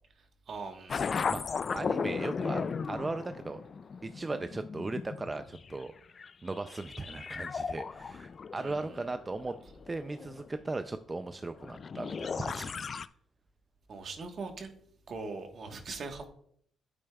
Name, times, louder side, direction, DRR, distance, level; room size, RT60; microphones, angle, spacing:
voice 1, 0.5-1.1 8.6-8.8 13.9-14.7 15.1-16.3, right 4 dB, 55° right, 1.3 m, -41 dB
sound 1, 0.9-5.9 6.2-10.6 11.6-13.1, left 5 dB, 45° left, 0.3 m, -36 dB
voice 2, 1.3-3.6 4.0-5.9 6.4-9.5 9.9-12.7, right 2 dB, 20° right, 0.4 m, -37 dB
8.8 x 8.6 x 2.3 m
cardioid pair, 90°, 0 cm